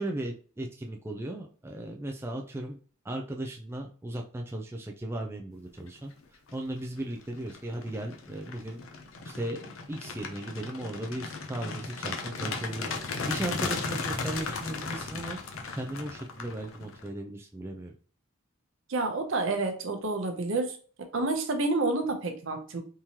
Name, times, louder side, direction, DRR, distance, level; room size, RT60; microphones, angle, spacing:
voice 1, 0.0-2.8 3.0-6.1 6.5-8.8 9.2-13.0 13.3-15.4 15.7-17.9, right 1 dB, 10° right, 2 dB, 0.3 m, -36 dB
sound 1, 6.2-6.6 7.0-17.1, left 4 dB, 80° left, 0.6 m, -36 dB
voice 2, 18.9-20.8 21.1-22.8, right 2 dB, 70° right, 5 dB, 0.7 m, -29 dB
3.6 x 2.9 x 2.8 m, 0.40 s
head